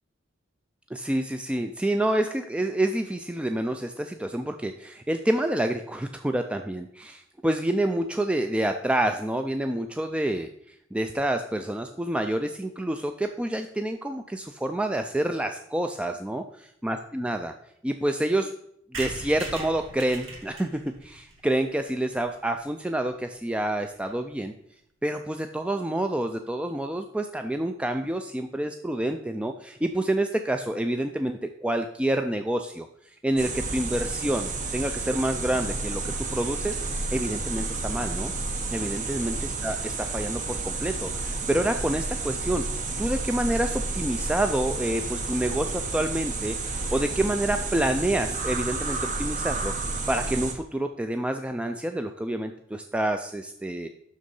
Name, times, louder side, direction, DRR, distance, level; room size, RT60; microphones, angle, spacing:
voice 1, 0.9-10.5 10.9-17.5 17.8-18.5 18.9-24.5 25.0-32.9 33.2-38.3 38.7-42.6 43.0-53.9, right 1 dB, 5° right, 6 dB, 0.3 m, -28 dB
sound 1, 18.9-22.6 23.1-23.2 23.3-23.4 23.7-23.8 24.0-24.2, right 2 dB, 70° right, 1.7 m, -41 dB
sound 2, 33.4-50.5, right 3 dB, 40° right, 0.9 m, -31 dB
6.5 x 6.2 x 5.4 m, 0.72 s
head